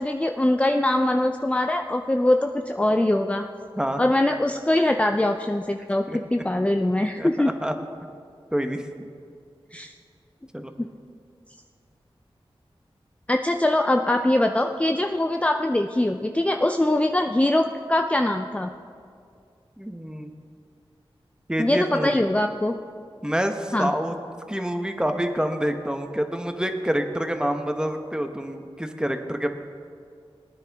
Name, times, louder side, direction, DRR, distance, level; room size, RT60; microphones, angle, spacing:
voice 1, 0.0-3.5 4.0-7.5 9.7-9.9 10.8-10.9 13.3-18.7 21.6-22.7 23.7-23.9, left 1 dB, 15° left, 5 dB, 0.5 m, -22 dB
voice 2, 7.2-7.7 8.5-8.8 10.5-10.7 19.8-20.3 21.5-22.2 23.2-24.1 24.5-29.5, equal, 10° right, 6 dB, 1.0 m, -27 dB
18.5 x 9.8 x 3.5 m, 2.3 s
wide cardioid pair, 55°, 10 cm